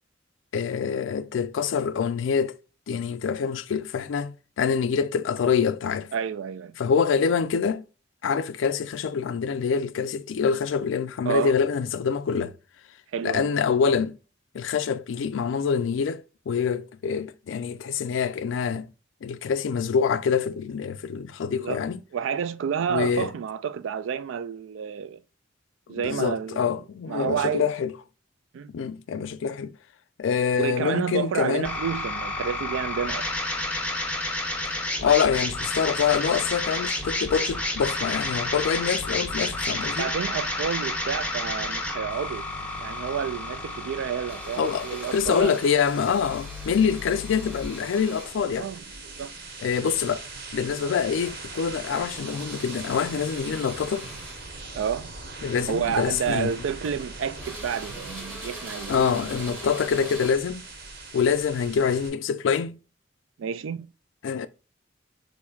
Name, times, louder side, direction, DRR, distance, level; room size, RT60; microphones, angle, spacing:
voice 1, 0.5-2.5 2.9-6.1 6.8-7.8 8.2-12.5 13.2-14.2 14.5-18.9 19.2-22.0 22.9-23.3 25.9-27.9 28.7-29.7 30.2-31.7 35.0-40.1 44.6-48.7 49.6-50.3 50.5-54.1 55.4-56.5 58.9-60.6 61.1-62.8 64.2-64.5, left 6 dB, 75° left, 0.4 m, -25 dB
voice 2, 6.1-6.8 11.3-11.5 13.1-13.5 21.5-21.8 22.1-25.2 25.9-27.7 28.5-28.7 30.6-33.3 40.0-42.5 42.8-45.6 48.6-49.3 54.7-55.1 55.7-59.5 63.4-63.9, right 7 dB, 80° right, 0.3 m, -30 dB
sound 1, 31.6-47.7, left 2 dB, 5° left, 0.6 m, -31 dB
sound 2, 42.1-62.1, right 3 dB, 55° right, 1.1 m, -42 dB
sound 3, 44.3-48.6 50.9-51.5 51.9-54.5 55.6-55.8 56.3-57.1 57.4-60.3, right 1 dB, 10° right, 1.0 m, -42 dB
4.4 x 2.6 x 2.3 m
head